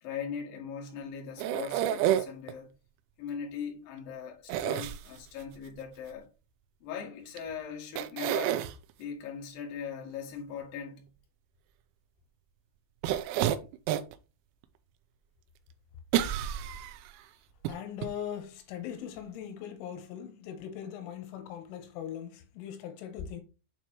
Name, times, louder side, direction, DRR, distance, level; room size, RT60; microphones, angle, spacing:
voice 1, 0.0-2.7 3.2-6.3 6.8-8.6 9.0-11.1, left 7 dB, 55° left, 3.2 m, -40 dB
sound 1, 1.4-2.5 4.5-5.4 7.4-7.5 8.0-8.7 13.0-14.2 14.6-14.7 16.1-17.1 17.7-17.8 18.0-18.1, right 11 dB, 90° right, 3.1 m, -29 dB
voice 2, 17.7-23.4, left 9 dB, 85° left, 3.6 m, -40 dB
9.2 x 4.1 x 3.0 m
omnidirectional pair, 5.5 m